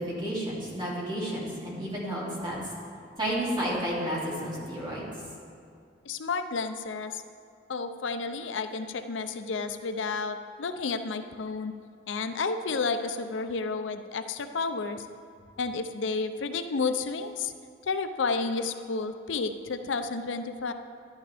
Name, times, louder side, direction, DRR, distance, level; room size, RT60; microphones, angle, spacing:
voice 1, 0.0-2.6 3.2-5.1, equal, 25° right, -6 dB, 2.5 m, -31 dB
voice 2, 6.1-7.2 7.7-11.7 12.1-15.1 15.6-17.5 17.9-20.7, left 4 dB, 80° left, 9 dB, 0.5 m, -31 dB
11.5 x 11.0 x 3.4 m, 2.4 s
head